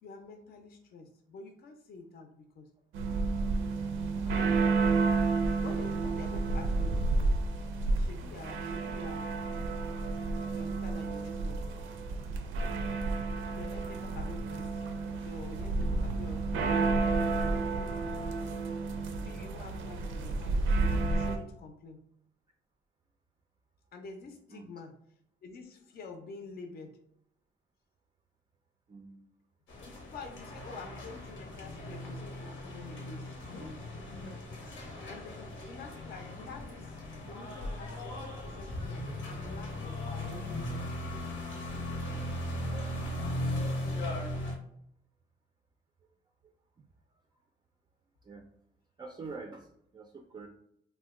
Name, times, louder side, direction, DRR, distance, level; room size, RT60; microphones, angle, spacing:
voice 1, 0.0-2.7 4.3-4.6 5.6-7.0 7.9-9.4 10.6-11.8 13.5-14.8 15.2-18.5 19.2-22.0 23.9-24.9 25.4-27.0 29.8-33.3 35.1-40.8, left 4 dB, 50° left, 4 dB, 0.5 m, -48 dB
sound 1, 2.9-21.4, right 3 dB, 85° right, 0.5 m, -31 dB
voice 2, 28.9-29.3 34.4-34.5 46.8-46.9 48.2-48.5 49.0-50.5, right 4 dB, 20° right, 3 dB, 0.3 m, -46 dB
sound 2, 29.7-44.5, left 1 dB, 90° left, 0.9 m, -38 dB
2.7 x 2.1 x 3.5 m, 0.73 s
cardioid pair, 90°, 20 cm